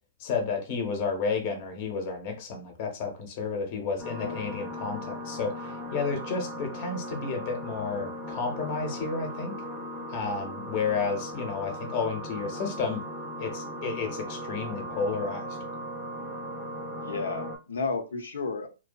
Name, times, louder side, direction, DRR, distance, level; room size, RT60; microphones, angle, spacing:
voice 1, 0.2-9.5 10.1-13.0 13.4-15.5, left 4 dB, 45° left, 0.7 m, -31 dB
sound 1, 4.0-17.6, equal, 10° right, 0.5 m, -38 dB
voice 2, 17.0-18.7, left 4 dB, 85° left, 0.5 m, -32 dB
2.5 x 2.2 x 2.2 m
hypercardioid pair, 135°, 0 cm